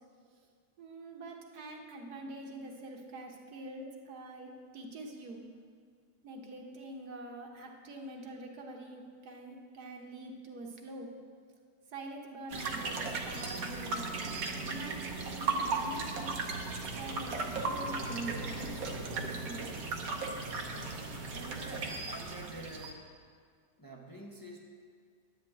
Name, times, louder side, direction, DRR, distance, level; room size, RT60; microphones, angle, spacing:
voice 1, 0.8-5.4 6.2-11.1 11.9-16.3 16.9-18.6 19.1-19.6, right 1 dB, 90° right, 2 dB, 1.7 m, -45 dB
sound 1, 12.5-22.9, right 3 dB, 70° right, 1.4 m, -36 dB
voice 2, 21.3-23.1 23.8-24.6, right 1 dB, 20° left, -1 dB, 0.6 m, -47 dB
10.5 x 5.2 x 8.4 m, 2.1 s
omnidirectional pair, 1.6 m